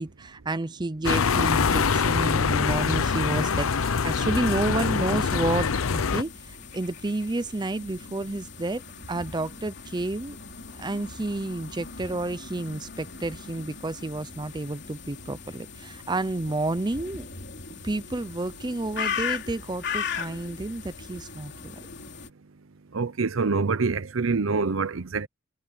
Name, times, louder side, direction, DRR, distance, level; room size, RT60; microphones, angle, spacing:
voice 1, 0.0-8.8 9.1-10.4 10.8-17.3 17.8-21.7, right 2 dB, 20° right, 0.5 m, -30 dB
sound 1, 1.0-6.2, left 5 dB, 85° left, 0.7 m, -24 dB
sound 2, 2.6-22.3, left 6 dB, 55° left, 3.3 m, -39 dB
voice 2, 22.9-25.3, right 4 dB, 70° right, 0.8 m, -25 dB
head